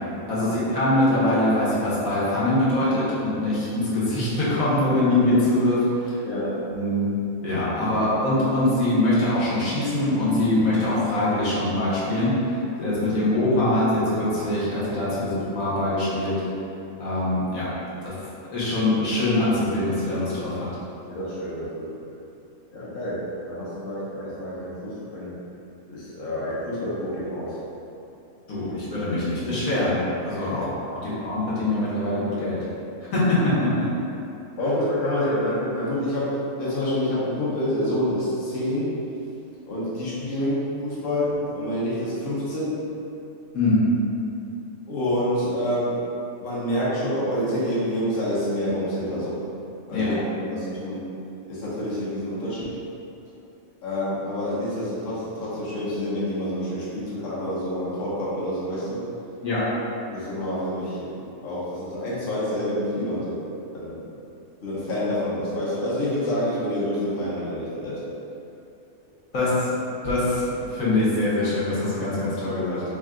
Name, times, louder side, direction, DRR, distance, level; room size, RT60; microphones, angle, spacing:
voice 1, 0.3-6.2 6.7-7.1 7.4-16.3 17.0-17.7 18.0-18.1 18.5-20.7 28.5-30.6 31.0-32.6 33.1-33.9 43.5-43.8 49.9-50.1 59.4-59.6 69.3-69.7 70.0-72.8, left 1 dB, 75° left, -9 dB, 1.4 m, -23 dB
voice 2, 6.2-6.5 21.1-21.9 22.7-25.3 25.9-27.6 30.5-30.6 34.6-39.0 39.7-42.9 44.9-46.0 46.4-49.4 49.9-51.1 51.5-52.8 53.8-59.0 60.1-61.2 61.4-63.4 63.7-64.0 64.6-68.1, equal, 45° left, -9 dB, 1.0 m, -27 dB
3.7 x 2.2 x 3.6 m, 2.8 s
omnidirectional pair, 1.5 m